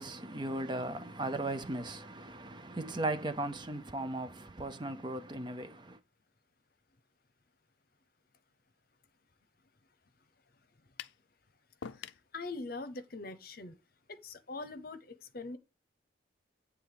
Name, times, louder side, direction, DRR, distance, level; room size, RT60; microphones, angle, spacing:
voice 1, 0.0-6.0, right 2 dB, 25° right, 0.6 m, -37 dB
sound 1, 11.0-11.2 11.8-12.3, left 7 dB, 70° left, 0.5 m, -44 dB
voice 2, 11.9-13.7 14.1-15.6, left 3 dB, 50° left, 0.9 m, -43 dB
9.1 x 3.4 x 6.8 m
head